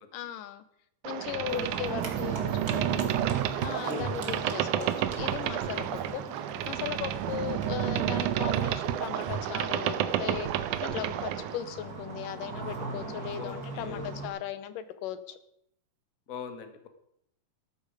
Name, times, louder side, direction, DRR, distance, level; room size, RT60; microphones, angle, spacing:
voice 1, 0.1-0.6 1.0-3.1 3.6-15.4, left 10 dB, 90° left, 13 dB, 2.6 m, -37 dB
Boat Water vehicle, 1.0-11.6, right 11 dB, 80° right, 2.2 m, -30 dB
Livestock farm animals working animals, 1.5-14.3, right 4 dB, 35° right, 2.2 m, -40 dB
voice 2, 10.8-11.2 13.4-14.0 16.3-16.9, left 6 dB, 40° left, 8 dB, 1.3 m, -41 dB
14.0 x 12.0 x 5.1 m, 0.75 s
omnidirectional pair, 3.7 m